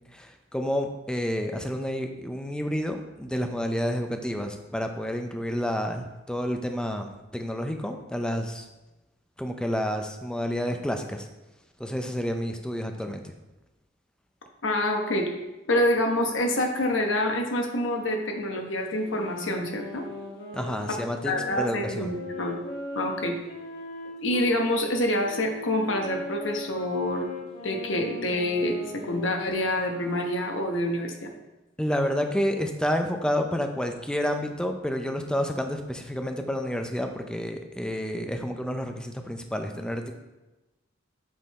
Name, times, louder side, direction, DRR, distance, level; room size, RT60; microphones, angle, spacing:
voice 1, 0.1-8.7 9.4-11.3 11.8-13.3 20.5-22.1 31.8-40.1, equal, 5° left, 5 dB, 0.5 m, -29 dB
voice 2, 14.6-15.3 15.7-20.1 20.9-21.0 21.2-22.6 22.9-23.4 24.2-27.3 27.6-31.3, left 1 dB, 80° left, 3 dB, 1.0 m, -27 dB
sound 1, 18.8-24.5 25.2-30.6, left 2 dB, 60° left, 1.5 m, -39 dB
7.6 x 3.9 x 4.1 m, 1.1 s
head